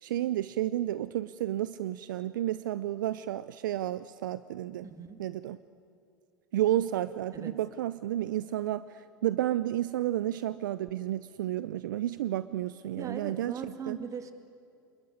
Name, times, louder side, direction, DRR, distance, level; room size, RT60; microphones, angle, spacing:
voice 1, 0.0-4.9 5.2-5.6 6.5-13.5 13.9-14.0, right 13 dB, 70° right, 16 dB, 0.6 m, -31 dB
voice 2, 4.8-5.2 7.3-7.6 13.0-14.3, right 6 dB, 30° right, 8 dB, 2.3 m, -40 dB
26.0 x 21.0 x 9.7 m, 2.4 s
hypercardioid pair, 85°, 11 cm